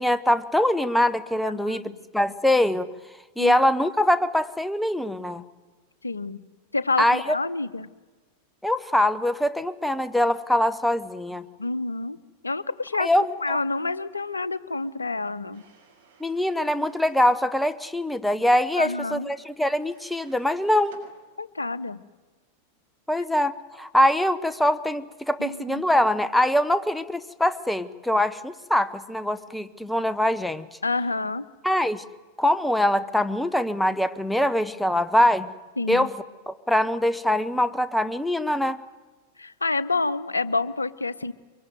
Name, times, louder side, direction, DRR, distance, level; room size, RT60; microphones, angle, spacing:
voice 1, 0.0-2.9 3.4-5.4 7.0-7.4 8.6-11.4 13.0-13.6 16.2-20.9 23.1-30.7 31.6-32.0 32.4-35.5 35.9-36.2 36.5-38.8, left 1 dB, 5° left, 14 dB, 1.0 m, -23 dB
voice 2, 1.4-1.9 3.4-3.5 6.0-6.4 6.7-7.9 11.6-12.2 12.4-13.1 13.4-15.6 18.8-19.3 21.4-22.0 25.4-25.8 30.8-31.4 35.8-36.1 39.4-41.3, left 3 dB, 80° left, 16 dB, 0.8 m, -28 dB
sound 1, 15.5-17.3 19.7-21.1, right 5 dB, 60° right, 6.3 m, -55 dB
24.0 x 23.0 x 9.4 m, 1.3 s
figure-of-eight pair, 90°, 0 cm